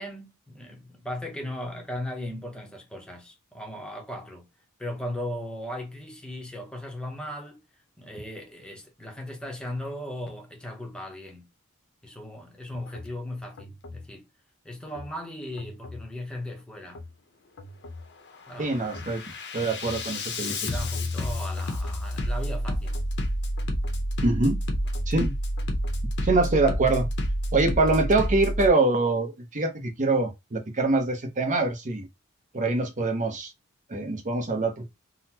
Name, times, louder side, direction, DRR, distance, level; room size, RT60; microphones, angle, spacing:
voice 1, 0.0-4.5 4.8-7.6 8.0-11.5 12.0-14.3 14.6-17.0 18.5-18.8 20.5-23.0, left 1 dB, 5° left, 0.8 m, -37 dB
Bass drum, 12.9-13.1 13.6-14.1 14.9-15.1 15.6-16.1 16.9-17.1 17.6-18.1 18.5-28.7, equal, 55° left, 0.7 m, -30 dB
voice 2, 18.6-19.2 19.5-20.7 24.2-24.6 25.1-25.3 26.2-27.1 27.5-32.1 32.5-33.5 33.9-34.9, right 3 dB, 35° right, 0.8 m, -24 dB
3.9 x 2.1 x 2.8 m
head